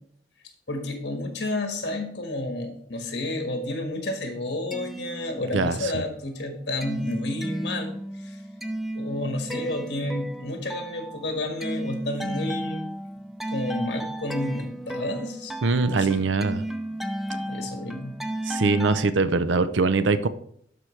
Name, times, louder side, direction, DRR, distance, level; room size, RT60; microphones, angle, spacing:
voice 1, 0.7-8.4 8.9-12.9 13.5-15.5 15.8-16.2 17.5-18.2, left 1 dB, 60° left, 4 dB, 1.6 m, -31 dB
sound 1, 4.5-5.9 6.3-19.1, right 1 dB, ahead, 0.4 m, -34 dB
voice 2, 5.5-5.9 15.6-16.6 18.5-20.3, right 4 dB, 80° right, 13 dB, 0.6 m, -22 dB
12.0 x 4.7 x 3.2 m, 0.66 s
head